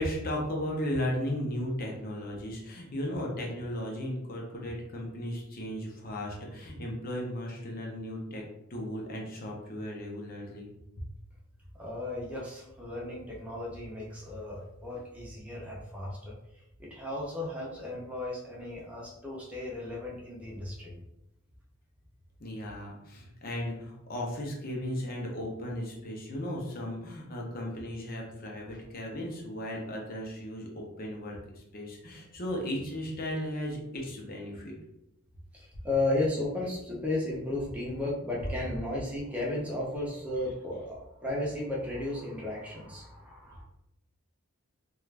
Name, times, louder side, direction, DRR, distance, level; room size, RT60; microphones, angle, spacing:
voice 1, 0.0-8.4 8.7-10.7 11.0-11.1 22.4-34.7, equal, 45° left, -1 dB, 0.6 m, -36 dB
voice 2, 11.8-16.3 16.8-20.9 28.7-28.8 35.5-43.6, left 2 dB, 5° right, -5 dB, 0.5 m, -34 dB
2.4 x 2.3 x 3.2 m, 0.86 s
head